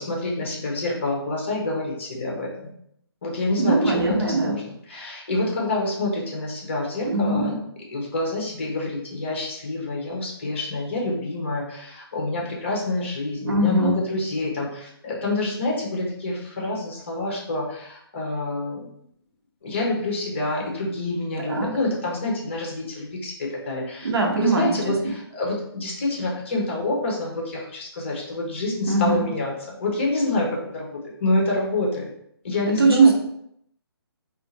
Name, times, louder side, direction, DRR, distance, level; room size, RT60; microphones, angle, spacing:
voice 1, 0.0-2.7 3.2-7.5 7.9-18.9 19.6-24.1 24.4-32.1 32.4-33.1, left 2 dB, 30° left, -1 dB, 0.8 m, -27 dB
voice 2, 3.6-4.5 7.0-7.6 13.5-14.1 21.4-21.8 24.0-25.1 28.9-29.3 32.8-33.1, right 3 dB, 70° right, 0 dB, 1.0 m, -21 dB
2.7 x 2.5 x 4.0 m, 0.72 s
hypercardioid pair, 175°, 13 cm